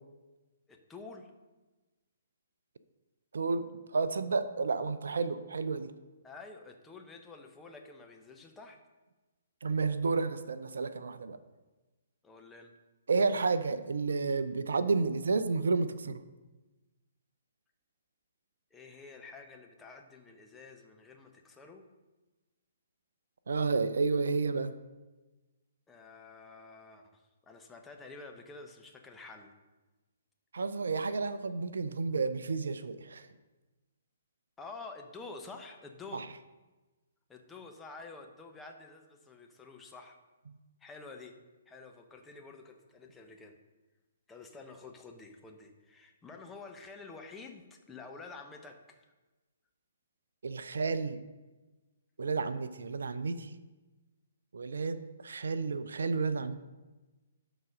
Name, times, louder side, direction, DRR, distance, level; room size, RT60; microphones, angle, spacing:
voice 1, 0.7-1.3 6.2-8.8 12.2-12.7 18.7-21.9 25.9-29.5 34.6-36.2 37.3-40.2 40.8-41.3 41.7-43.6 44.3-49.0, left 3 dB, 10° left, 3 dB, 0.9 m, -49 dB
voice 2, 3.3-5.9 9.6-11.4 13.1-16.2 23.5-24.7 30.5-33.3 36.1-36.3 50.4-51.2 52.2-53.6 54.5-56.6, right 4 dB, 65° right, 12 dB, 0.5 m, -31 dB
12.0 x 4.0 x 5.3 m, 1.2 s
figure-of-eight pair, 125°, 0 cm